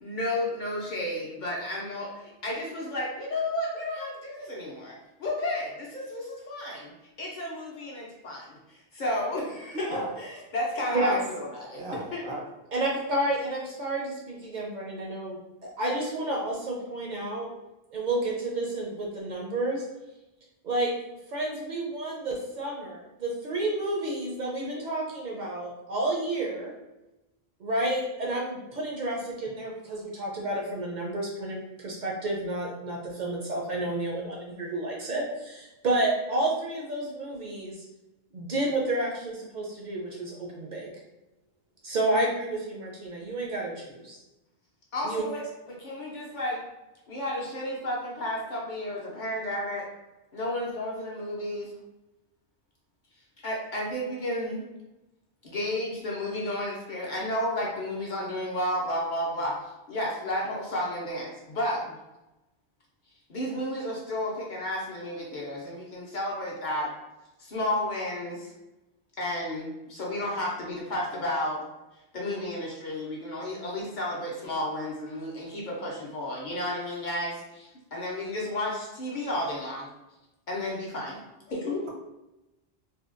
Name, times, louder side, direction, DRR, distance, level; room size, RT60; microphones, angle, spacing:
voice 1, 0.0-6.9 7.2-12.2 44.9-46.6 47.1-49.8 50.3-51.7 53.4-54.7 55.4-59.6 59.9-61.9 63.3-66.9 67.4-68.5 69.2-71.7 72.1-79.9 80.5-81.2 81.5-81.8, left 1 dB, 55° left, -3 dB, 0.6 m, -32 dB
voice 2, 9.7-10.1 11.7-12.4, right 1 dB, 75° right, -2 dB, 0.9 m, -35 dB
voice 3, 12.7-17.5 17.9-19.8 20.6-20.9 21.3-26.7 27.6-37.8 38.3-40.9 41.8-44.2 45.0-45.2, right 1 dB, 55° right, -2 dB, 0.5 m, -30 dB
2.7 x 2.2 x 2.4 m, 0.98 s
omnidirectional pair, 1.1 m